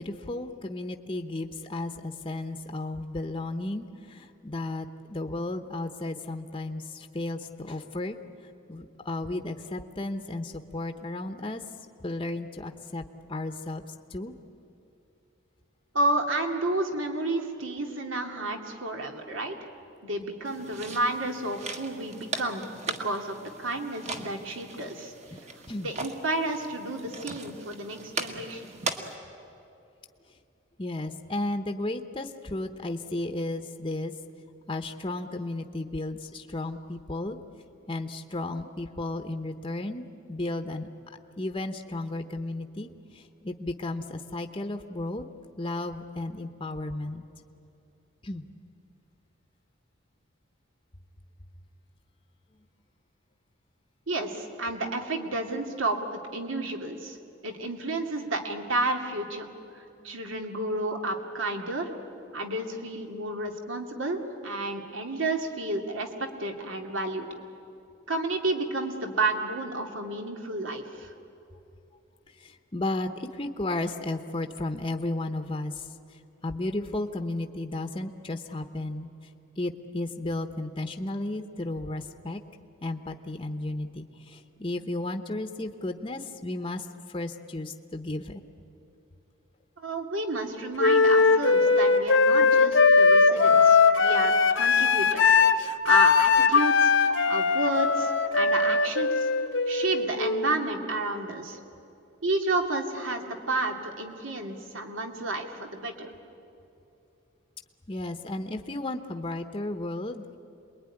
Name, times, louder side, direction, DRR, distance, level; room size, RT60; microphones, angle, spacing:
voice 1, 0.0-8.2 8.7-11.6 12.0-13.0 13.3-13.8 14.1-14.3 25.3-25.4 25.7-25.9 30.8-34.1 34.7-37.4 37.9-45.2 45.6-47.2 48.2-48.4 60.0-60.2 72.4-79.1 79.6-82.4 82.8-88.4 107.9-110.4, left 2 dB, 25° left, 6 dB, 0.9 m, -34 dB
voice 2, 15.9-19.5 20.0-25.1 25.8-28.8 54.1-57.2 57.4-59.5 59.7-61.9 62.3-67.3 68.1-71.1 89.8-99.3 99.7-101.6 102.2-106.2, right 2 dB, 75° right, 3 dB, 2.6 m, -31 dB
sound 1, 20.5-29.2, right 3 dB, 35° right, 1.6 m, -39 dB
Wind instrument woodwind instrument, 90.8-100.6, left 4 dB, 70° left, 1.1 m, -20 dB
27.5 x 21.5 x 9.9 m, 2.9 s
head